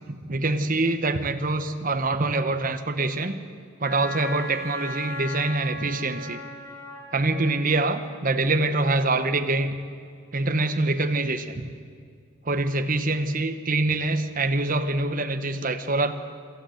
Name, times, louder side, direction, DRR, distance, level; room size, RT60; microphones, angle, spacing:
voice 1, 0.3-3.4 3.8-6.4 7.1-9.8 10.3-11.7 12.4-16.1, right 2 dB, 40° right, 7 dB, 1.1 m, -25 dB
Wind instrument woodwind instrument, 3.8-7.7, left 1 dB, 15° left, 2.5 m, -36 dB
25.5 x 13.0 x 7.9 m, 2.2 s
head